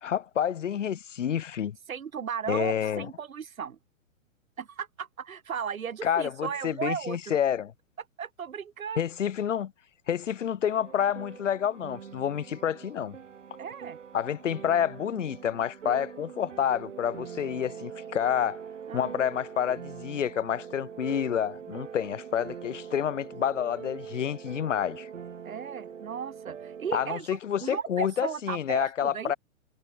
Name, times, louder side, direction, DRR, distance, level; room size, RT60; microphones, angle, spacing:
voice 1, 0.0-1.8 2.5-3.1 6.0-7.7 9.0-9.7 10.1-13.2 14.1-18.6 18.9-25.1 26.9-29.4, left 9 dB, 60° left, 0.9 m, -29 dB
voice 2, 1.9-3.8 4.6-7.4 8.2-9.0 13.6-14.0 18.9-19.1 25.4-29.3, right 7 dB, 80° right, 0.7 m, -36 dB
sound 1, 10.6-27.1, right 7 dB, 60° right, 3.8 m, -43 dB
figure-of-eight pair, 115°, 41 cm